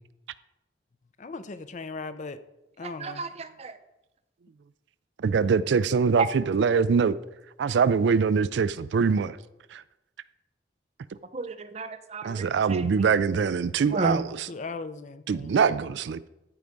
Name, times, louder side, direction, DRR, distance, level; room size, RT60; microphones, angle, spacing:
voice 1, 1.2-2.4 2.8-3.2 14.5-15.6, left 4 dB, 45° left, 0.5 m, -38 dB
voice 2, 2.8-3.8 6.2-6.3 11.3-12.8 13.9-14.2, right 3 dB, 35° right, 0.6 m, -31 dB
voice 3, 5.2-7.2 7.6-9.4 9.7-9.8 12.2-14.5 15.3-16.3, right 5 dB, 80° right, 0.4 m, -23 dB
13.5 x 4.6 x 5.2 m
head